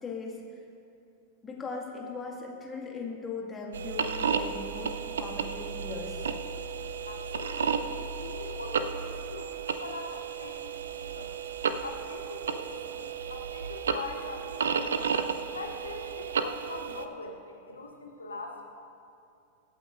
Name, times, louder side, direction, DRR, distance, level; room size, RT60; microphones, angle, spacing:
voice 1, 0.0-0.4 1.4-4.9 5.2-6.2, left 4 dB, 20° left, -1 dB, 1.9 m, -39 dB
sound 1, 3.7-17.1, right 6 dB, 65° right, 0.5 m, -33 dB
voice 2, 7.0-11.3 11.8-15.1 15.5-18.6, left 3 dB, 75° left, 2 dB, 0.9 m, -43 dB
24.5 x 8.7 x 2.6 m, 2.6 s
figure-of-eight pair, 90°, 0 cm